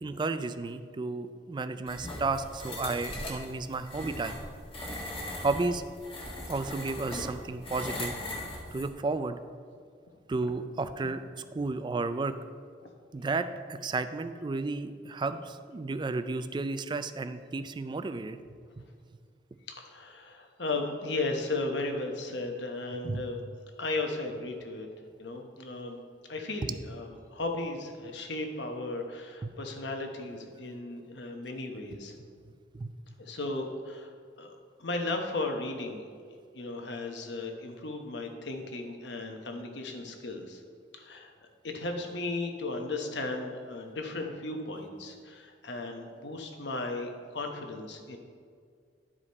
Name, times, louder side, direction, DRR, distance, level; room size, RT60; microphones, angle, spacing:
voice 1, 0.0-4.4 5.4-5.9 6.5-8.2 8.7-9.4 10.3-11.2 11.5-12.4 13.1-18.4 23.0-23.2 29.4-29.5 32.7-32.9, right 3 dB, 25° right, 11 dB, 0.3 m, -32 dB
sound 1, 1.9-8.9, left 1 dB, 30° left, 1.5 m, -39 dB
voice 2, 19.7-23.4 23.8-24.9 25.2-26.0 26.3-32.1 33.2-36.0 36.5-40.6 40.9-41.3 41.6-48.2, left 2 dB, 70° left, 3 dB, 1.0 m, -35 dB
11.5 x 5.0 x 4.2 m, 2.2 s
head